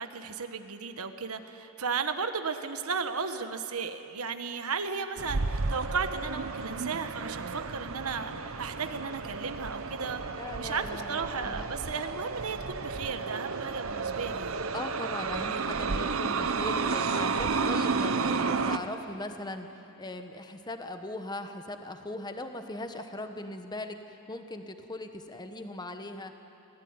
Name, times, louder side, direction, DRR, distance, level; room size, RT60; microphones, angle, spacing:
voice 1, 0.0-14.7, right 5 dB, 85° right, 8 dB, 1.3 m, -35 dB
sound 1, 5.2-18.8, right 4 dB, 65° right, 0.9 m, -32 dB
voice 2, 10.4-11.7 14.7-19.7 20.0-26.4, left 2 dB, 20° left, 7 dB, 1.2 m, -39 dB
24.5 x 17.5 x 9.6 m, 2.9 s
head